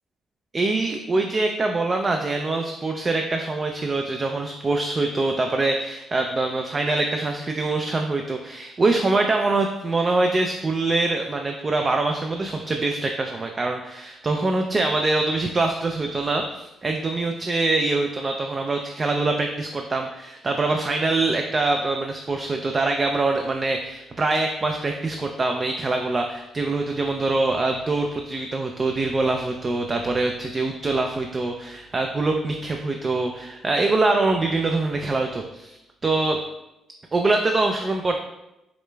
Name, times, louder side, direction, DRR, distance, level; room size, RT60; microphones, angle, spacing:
voice 1, 0.5-35.8 36.0-36.4 37.1-38.2, right 2 dB, 30° right, 3 dB, 0.3 m, -24 dB
4.8 x 3.2 x 2.2 m, 0.91 s
cardioid pair, 90°, 0 cm